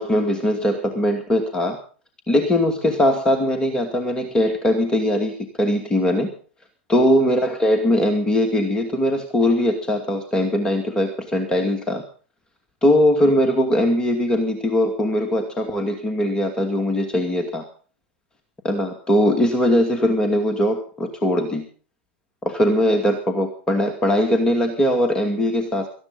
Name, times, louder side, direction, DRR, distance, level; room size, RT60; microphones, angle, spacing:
voice 1, 0.0-1.8 2.3-6.3 6.9-12.0 12.8-17.6 18.6-21.6 22.4-25.9, left 1 dB, 15° left, 4 dB, 2.3 m, -20 dB
18.5 x 14.5 x 4.0 m, 0.40 s
figure-of-eight pair, 95°, 6 cm